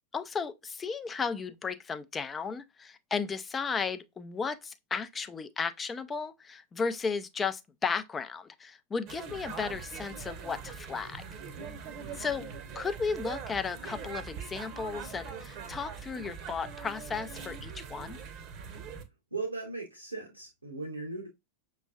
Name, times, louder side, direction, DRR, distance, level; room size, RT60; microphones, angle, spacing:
voice 1, 0.1-11.2 12.2-12.5 12.7-18.2, left 5 dB, 20° left, 0.5 m, -34 dB
sound 1, 9.1-19.0, right 6 dB, 40° right, 0.9 m, -42 dB
voice 2, 19.3-21.3, right 3 dB, 80° right, 1.0 m, -37 dB
6.0 x 3.1 x 2.3 m
figure-of-eight pair, 90°, 0 cm